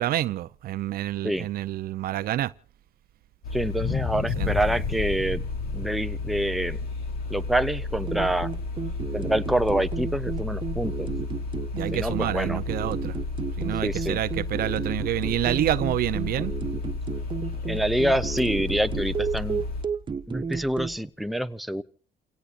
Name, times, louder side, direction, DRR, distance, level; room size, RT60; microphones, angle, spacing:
voice 1, 0.0-2.5 4.4-4.5 11.7-13.2 13.6-16.5, right 13 dB, 65° right, 0.7 m, -28 dB
sound 1, 3.4-19.8, left 3 dB, 60° left, 4.3 m, -33 dB
voice 2, 3.5-5.4 5.7-6.8 7.3-8.5 9.1-11.1 11.9-12.6 13.8-14.2 17.7-19.6 20.3-21.8, right 1 dB, ahead, 0.8 m, -26 dB
sound 2, 3.7-7.9 8.4-8.5, left 7 dB, 40° left, 1.1 m, -32 dB
sound 3, 8.1-21.0, right 5 dB, 30° right, 1.4 m, -33 dB
29.5 x 17.5 x 2.6 m
cardioid pair, 110°, 17 cm